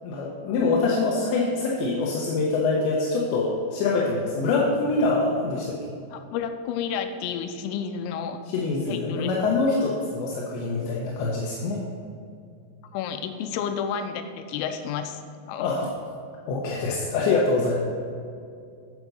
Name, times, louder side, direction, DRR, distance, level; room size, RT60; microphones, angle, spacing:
voice 1, 0.0-5.8 8.5-11.8 15.6-15.9 16.5-17.8, left 3 dB, 75° left, -4 dB, 3.0 m, -24 dB
voice 2, 6.1-8.4 8.9-9.3 12.9-15.2 15.5-15.7, left 7 dB, 90° left, 8 dB, 3.3 m, -31 dB
9.5 x 8.0 x 5.4 m, 2.4 s
omnidirectional pair, 5.8 m